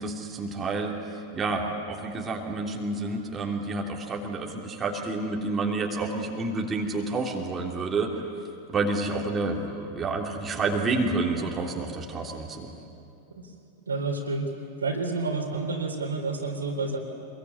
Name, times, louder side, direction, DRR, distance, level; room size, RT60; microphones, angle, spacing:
voice 1, 0.0-8.2 8.7-12.7, right 3 dB, 20° right, 0 dB, 3.2 m, -29 dB
voice 2, 13.9-14.5 14.8-17.0, right 3 dB, 75° right, 2 dB, 4.0 m, -29 dB
26.0 x 22.0 x 9.8 m, 2.6 s
figure-of-eight pair, 90°, 0 cm